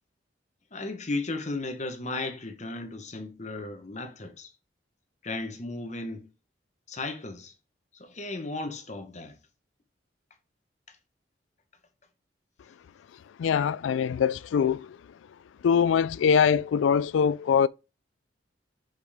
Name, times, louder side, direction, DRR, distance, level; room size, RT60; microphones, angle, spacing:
voice 1, 0.7-4.5 5.2-6.3 6.9-7.5 7.9-9.4, left 2 dB, 40° left, 1.0 m, -35 dB
voice 2, 13.4-15.0 15.6-17.7, left 7 dB, 85° left, 0.3 m, -23 dB
7.9 x 5.0 x 3.5 m
head